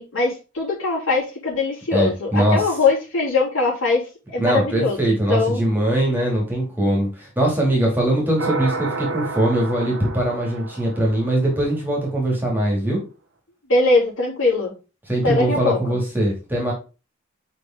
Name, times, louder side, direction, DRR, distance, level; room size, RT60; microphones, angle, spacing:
voice 1, 0.0-4.0 4.3-5.6 13.7-14.7 15.2-15.8, left 3 dB, 80° left, -4 dB, 3.9 m, -21 dB
voice 2, 1.9-2.6 4.4-13.0 15.1-16.7, right 1 dB, 10° right, -3 dB, 2.5 m, -21 dB
sound 1, 8.4-11.8, right 3 dB, 75° right, 1.3 m, -30 dB
5.7 x 5.2 x 3.8 m, 0.31 s
head